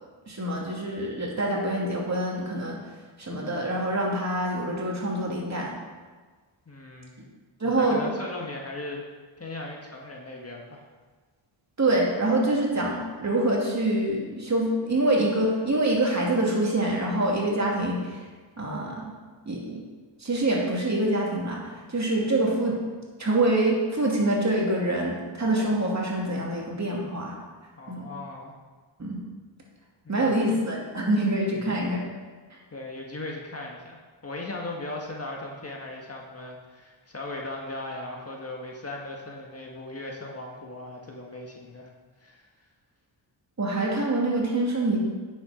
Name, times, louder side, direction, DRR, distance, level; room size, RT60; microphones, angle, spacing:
voice 1, 0.3-2.8 3.2-5.7 7.6-8.0 11.8-18.2 18.6-19.1 19.5-19.8 20.2-22.8 23.2-27.3 27.9-28.1 29.0-29.2 30.1-32.0 43.6-45.1, right 1 dB, 35° right, -2 dB, 2.6 m, -25 dB
voice 2, 6.7-7.3 7.8-9.0 9.4-10.8 27.8-28.5 30.0-30.5 31.7-31.8 32.7-41.9 42.2-42.5, left 2 dB, 30° left, -1 dB, 1.6 m, -38 dB
9.5 x 7.2 x 5.0 m, 1.4 s
cardioid pair, 75°, 46 cm